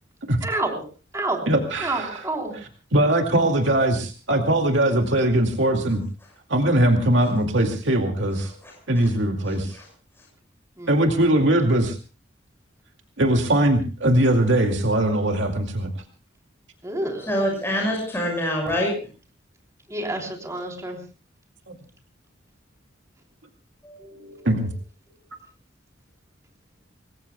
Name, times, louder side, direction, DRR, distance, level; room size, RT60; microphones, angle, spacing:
voice 1, 0.4-0.8 1.1-1.4 1.8-2.5 10.8-11.1 16.8-17.3 19.9-20.2 20.4-21.0, right 2 dB, 15° right, 1 dB, 3.6 m, -28 dB
voice 2, 1.5-2.3 2.5-6.0 6.5-8.5 8.9-9.8 10.9-12.0 13.2-15.9 21.7-21.8 24.4-24.7, right 1 dB, 75° right, 3 dB, 2.3 m, -21 dB
voice 3, 17.3-18.9 23.8-24.5, equal, 15° left, -1 dB, 6.5 m, -26 dB
27.0 x 21.0 x 2.3 m, 0.36 s
head